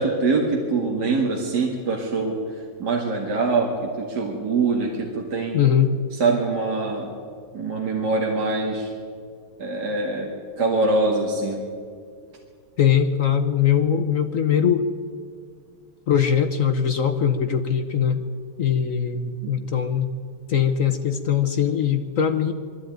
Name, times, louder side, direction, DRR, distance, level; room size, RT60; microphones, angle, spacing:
voice 1, 0.0-5.6 6.1-7.1 7.5-8.9 9.6-10.3 10.6-11.6 19.4-19.5, right 3 dB, 50° right, -1 dB, 2.5 m, -24 dB
voice 2, 5.5-5.9 12.8-14.9 16.1-18.2 18.6-20.1 20.5-22.5, left 8 dB, 55° left, 7 dB, 0.9 m, -21 dB
21.5 x 14.5 x 9.1 m, 2.1 s
omnidirectional pair, 2.4 m